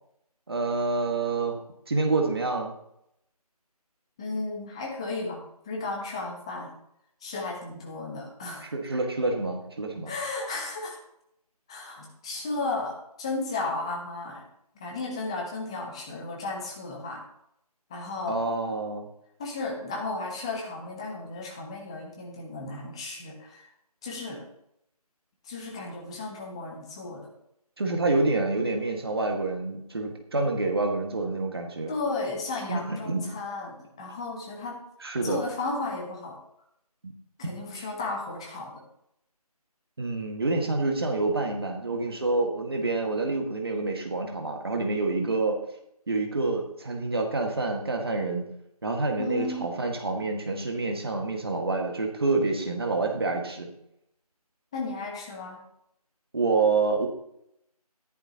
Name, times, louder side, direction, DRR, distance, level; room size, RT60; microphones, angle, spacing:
voice 1, 0.5-1.6 1.9-2.7 8.6-10.1 18.3-19.1 27.8-31.9 32.7-33.3 35.0-35.4 37.0-37.1 37.4-37.9 40.0-45.6 46.1-48.5 48.8-53.7 56.3-57.1, right 3 dB, 40° right, 3 dB, 1.8 m, -27 dB
voice 2, 4.2-6.7 7.2-8.7 10.1-11.0 11.7-14.4 14.8-17.2 17.9-18.4 19.4-23.6 24.0-24.5 25.4-27.3 31.9-34.8 35.2-36.4 37.4-38.8 49.2-49.6 54.7-55.6, left 3 dB, 10° left, 0 dB, 1.0 m, -34 dB
14.0 x 11.5 x 3.0 m, 0.77 s
figure-of-eight pair, 160°, 20 cm